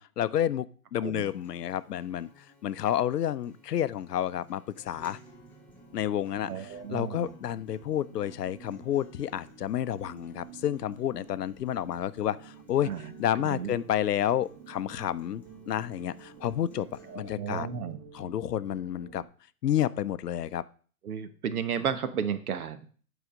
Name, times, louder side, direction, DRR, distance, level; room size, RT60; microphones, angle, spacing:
voice 1, 0.0-2.3 2.6-5.2 5.9-12.9 13.2-16.9 17.1-17.7 18.1-19.2 19.6-20.6, left 11 dB, 85° left, 16 dB, 0.6 m, -30 dB
Acoustic guitar, 1.1-17.2, left 2 dB, 5° left, 1.4 m, -58 dB
sound 1, 4.8-19.2, right 8 dB, 20° right, 1.9 m, -51 dB
voice 2, 6.4-7.3 12.8-13.1 13.4-13.8 17.1-18.0 21.0-22.9, right 7 dB, 65° right, 11 dB, 1.2 m, -33 dB
8.2 x 4.9 x 5.0 m, 0.43 s
hypercardioid pair, 140°, 46 cm